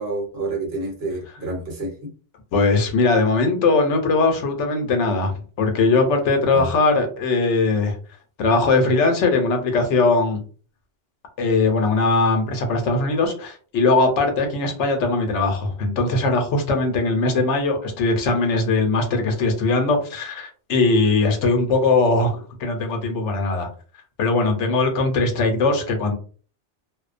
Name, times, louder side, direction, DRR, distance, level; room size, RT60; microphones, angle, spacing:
voice 1, 0.0-2.1 6.5-6.7, right 2 dB, 60° right, -1 dB, 1.0 m, -28 dB
voice 2, 2.5-8.0 8.4-10.4 11.4-23.7 24.2-26.1, left 3 dB, 75° left, 4 dB, 1.0 m, -20 dB
2.4 x 2.1 x 2.4 m, 0.41 s
omnidirectional pair, 1.2 m